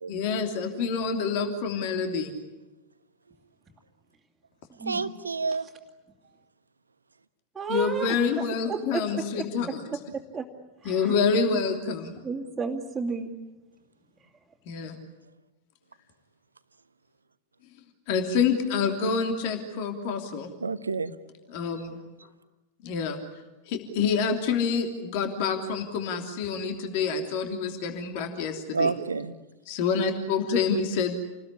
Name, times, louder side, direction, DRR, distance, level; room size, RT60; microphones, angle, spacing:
voice 1, 0.1-2.3 7.7-9.9 10.8-12.1 14.7-15.0 18.1-20.5 21.5-22.0 22.8-23.2 23.7-28.9 29.7-31.1, left 5 dB, 50° left, 5 dB, 3.1 m, -27 dB
voice 2, 4.8-5.7 20.6-21.1 28.7-29.3, right 4 dB, 75° right, 11 dB, 1.2 m, -29 dB
voice 3, 7.5-8.1 8.7-9.7 10.1-10.4 10.8-11.1 12.2-13.3, right 4 dB, 10° right, -5 dB, 2.7 m, -32 dB
29.5 x 20.0 x 9.8 m, 1.1 s
figure-of-eight pair, 90°, 0 cm